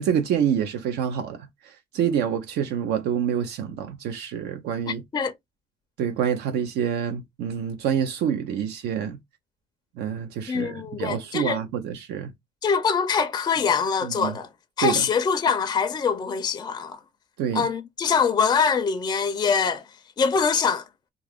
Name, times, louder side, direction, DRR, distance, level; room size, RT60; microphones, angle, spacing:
voice 1, 0.0-5.0 6.0-9.2 10.0-12.3 14.0-14.4 14.8-15.0 17.4-17.7, right 8 dB, 80° right, 0.6 m, -27 dB
voice 2, 4.9-5.3 10.5-11.6 12.6-14.5 14.8-17.0 17.5-19.8 20.2-20.9, left 6 dB, 25° left, 0.4 m, -24 dB
2.5 x 2.4 x 3.4 m
cardioid pair, 110°, 17 cm